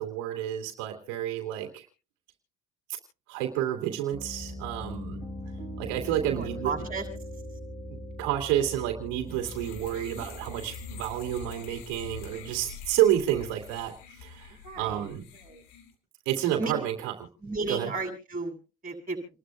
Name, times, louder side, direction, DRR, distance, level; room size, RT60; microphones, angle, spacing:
voice 1, 0.0-1.9 3.3-5.2 5.8-6.7 7.9-15.2 16.3-17.1 17.7-17.9, right 12 dB, 85° right, 3 dB, 2.8 m, -30 dB
Piano, 4.1-11.6, left 1 dB, 15° left, 4.9 m, -41 dB
voice 2, 6.3-7.0 9.4-9.7 14.6-15.1 15.3-15.6 16.6-16.7 17.4-18.6 18.8-19.2, right 3 dB, 20° right, 3 dB, 7.2 m, -34 dB
sound 1, 9.3-15.9, left 7 dB, 80° left, 2.6 m, -45 dB
29.5 x 12.5 x 2.3 m, 0.33 s
supercardioid pair, 100°, 37 cm